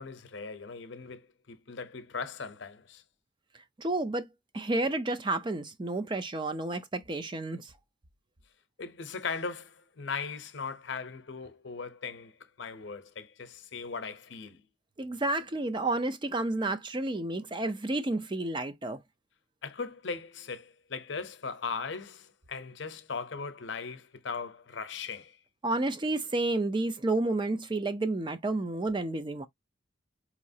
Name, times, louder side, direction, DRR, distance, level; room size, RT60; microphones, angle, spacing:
voice 1, 0.0-3.0 8.8-14.6 19.6-25.4, left 5 dB, 60° left, 0.8 m, -39 dB
voice 2, 3.8-4.3 4.5-7.7 15.0-19.0 25.6-29.5, right 2 dB, 25° right, 0.4 m, -30 dB
4.7 x 3.0 x 2.7 m
head